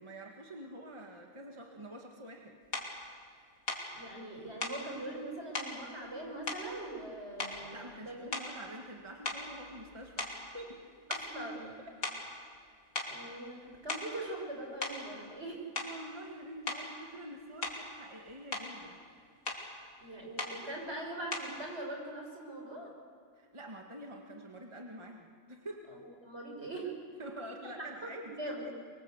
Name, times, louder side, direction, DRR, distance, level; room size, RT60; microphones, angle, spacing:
voice 1, 0.0-2.6 7.7-10.9 11.6-12.0 15.8-19.0 23.4-25.9 27.2-28.6, right 1 dB, 25° right, 1 dB, 1.8 m, -47 dB
sound 1, 2.7-2.9 3.7-3.9 4.6-4.8 5.5-5.8 6.5-7.1 7.4-7.8 8.3-8.7 9.2-10.8 11.1-11.3 12.0-12.3 13.0-13.2 13.7-14.2 14.8-15.0 15.8-16.0 16.7-16.9 17.6-17.9 18.3-18.7 19.5-19.7 20.4-20.6 21.3-21.6, left 2 dB, 85° left, 3.4 m, -38 dB
voice 2, 3.9-8.3 11.1-11.8 13.0-15.6 20.0-22.9 25.9-26.9 28.0-28.7, right 1 dB, 60° right, 1 dB, 5.9 m, -42 dB
24.5 x 24.5 x 8.1 m, 2.3 s
omnidirectional pair, 1.3 m